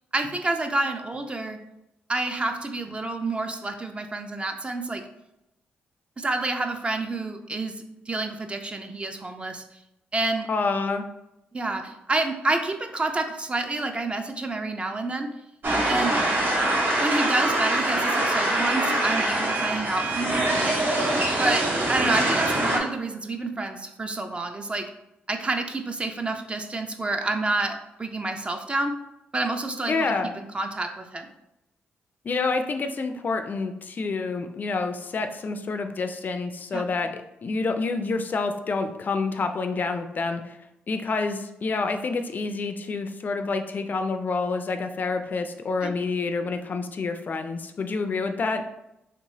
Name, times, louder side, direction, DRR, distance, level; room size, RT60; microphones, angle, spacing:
voice 1, 0.1-1.6 2.1-5.0 6.2-7.7 8.1-9.6 10.1-10.5 11.5-15.3 15.8-16.2 17.0-20.7 21.4-24.9 25.3-28.9 29.3-30.1 30.4-31.3 36.7-36.8 45.8-45.9, right 2 dB, 25° right, 6 dB, 0.4 m, -28 dB
voice 2, 10.5-11.0 29.9-30.3 32.2-37.1 37.4-40.5 40.9-48.6, left 4 dB, 45° left, 7 dB, 0.3 m, -28 dB
sound 1, 15.6-22.8, right 1 dB, 55° right, 0.8 m, -24 dB
3.3 x 2.9 x 2.7 m, 0.88 s
cardioid pair, 65°, 4 cm